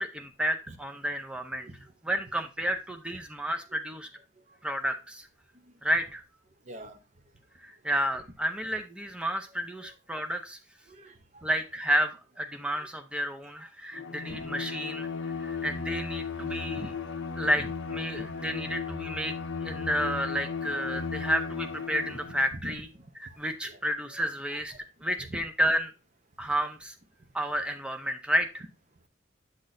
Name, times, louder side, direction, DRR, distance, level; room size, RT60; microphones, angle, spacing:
voice 1, 0.0-1.7 2.0-4.1 4.6-5.3 5.8-6.2 7.6-10.6 11.4-15.1 15.4-16.9 17.4-22.9 23.2-24.7 25.0-25.9 26.4-26.9 27.3-28.6, equal, 5° right, 0.6 m, -31 dB
voice 2, 6.7-7.0 9.8-9.9 10.9-11.5 12.8-12.9 14.3-14.4 16.8-16.9 17.5-17.7 18.1-18.3 20.9-21.0 22.1-22.2 22.6-22.7 23.6-23.8 25.3-25.4, right 1 dB, 35° right, 0.8 m, -43 dB
Bowed string instrument, 13.9-22.5, left 5 dB, 65° left, 0.6 m, -35 dB
8.5 x 6.1 x 2.6 m
head